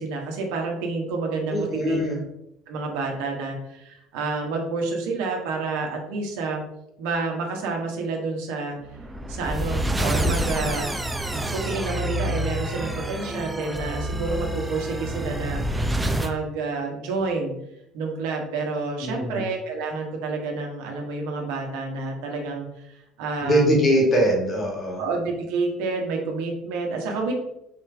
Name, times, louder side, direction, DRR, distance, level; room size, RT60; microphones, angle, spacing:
voice 1, 0.0-2.0 2.7-6.6 7.0-8.8 9.3-10.9 11.3-15.6 16.2-17.5 17.9-23.6 25.0-27.3, right 3 dB, 75° right, 1 dB, 1.2 m, -29 dB
voice 2, 1.5-2.2 19.0-19.4 23.4-25.0, equal, 35° left, 0 dB, 1.8 m, -22 dB
sound 1, 8.9-16.3, right 1 dB, 15° right, 0.5 m, -27 dB
4.7 x 3.3 x 3.4 m, 0.82 s
hypercardioid pair, 75°, 0 cm